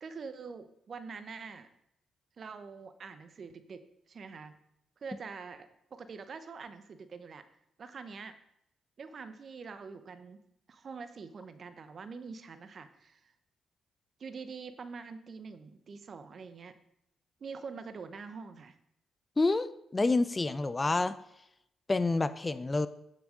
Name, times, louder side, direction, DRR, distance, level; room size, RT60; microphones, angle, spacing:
voice 1, 0.0-1.7 2.4-4.6 5.0-7.4 7.8-8.3 9.0-10.4 10.7-13.3 14.2-16.7 17.4-18.8, right 5 dB, 50° right, 11 dB, 0.9 m, -45 dB
voice 2, 19.4-21.2 21.9-22.9, left 3 dB, 25° left, 14 dB, 0.6 m, -28 dB
8.8 x 6.9 x 3.8 m, 0.79 s
hypercardioid pair, 40°, 0 cm